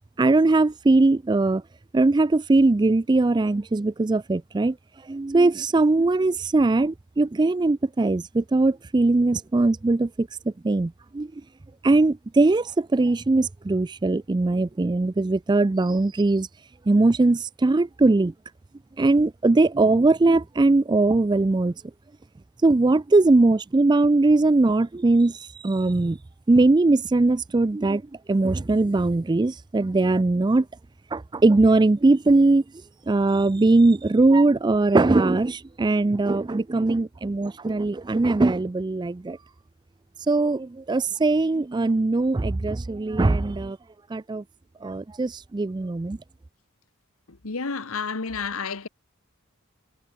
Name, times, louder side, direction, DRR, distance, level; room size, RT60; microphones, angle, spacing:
voice 1, 0.2-1.6 1.9-4.8 5.1-10.3 10.6-11.3 11.8-16.5 16.9-18.3 19.0-21.7 22.6-26.2 26.5-28.0 28.3-30.7 31.1-32.6 33.1-39.4 40.3-43.8 44.1-44.4 44.8-46.2, right 2 dB, 20° right, 0.4 m, -20 dB
voice 2, 47.3-48.9, left 5 dB, 75° left, 1.3 m, -30 dB
head